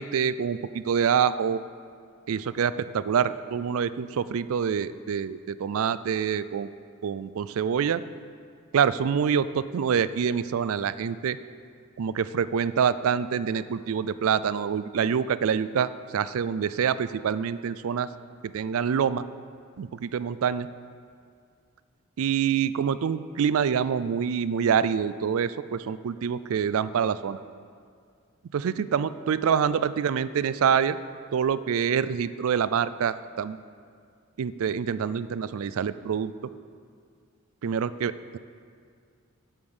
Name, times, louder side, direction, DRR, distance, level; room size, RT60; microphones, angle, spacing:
voice 1, 0.0-1.6 2.3-6.7 7.0-8.0 8.7-11.4 12.0-18.1 18.4-19.2 19.8-20.7 22.2-27.4 28.5-31.0 31.3-33.6 34.4-36.3 37.6-38.4, right 7 dB, 70° right, 15 dB, 0.3 m, -26 dB
8.1 x 7.2 x 7.0 m, 2.2 s
head